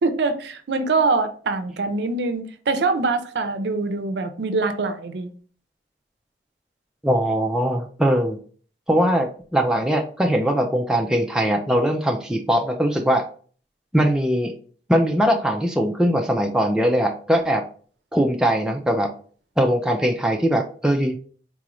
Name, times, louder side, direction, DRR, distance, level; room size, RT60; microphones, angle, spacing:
voice 1, 0.0-5.4, right 3 dB, 75° right, 0.5 m, -24 dB
voice 2, 7.0-8.4 8.9-13.2 13.9-14.5 14.9-17.7 18.1-19.1 19.6-21.2, equal, 5° right, 0.3 m, -21 dB
4.0 x 2.4 x 2.9 m
head